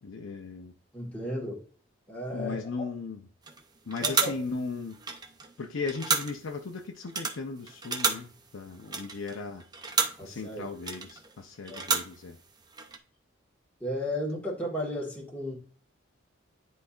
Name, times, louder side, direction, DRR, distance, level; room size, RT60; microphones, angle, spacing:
voice 1, 0.0-0.7 2.3-3.2 3.9-5.0 5.6-9.6 10.2-12.4, left 4 dB, 75° left, 0.6 m, -37 dB
voice 2, 0.9-1.6 2.1-2.7 4.0-4.4 10.2-10.7 11.7-12.0 13.8-15.5, left 1 dB, 5° left, 1.4 m, -34 dB
sound 1, 3.5-3.6 3.9-5.5 5.8-6.6 7.0-10.3 10.8-11.3 11.6-12.4 12.7-13.0, right 5 dB, 20° right, 0.5 m, -32 dB
9.9 x 4.1 x 2.4 m
head